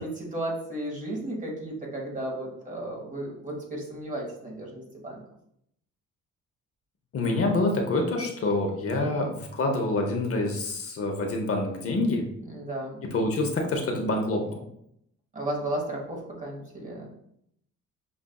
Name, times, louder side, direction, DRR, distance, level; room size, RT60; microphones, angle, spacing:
voice 1, 0.0-5.2 8.9-9.3 12.5-13.0 15.3-17.1, right 1 dB, 25° right, -1 dB, 1.3 m, -34 dB
voice 2, 7.1-12.3 13.1-14.6, left 2 dB, 50° left, 2 dB, 0.8 m, -26 dB
6.0 x 2.5 x 2.3 m, 0.74 s
cardioid pair, 90°, 30 cm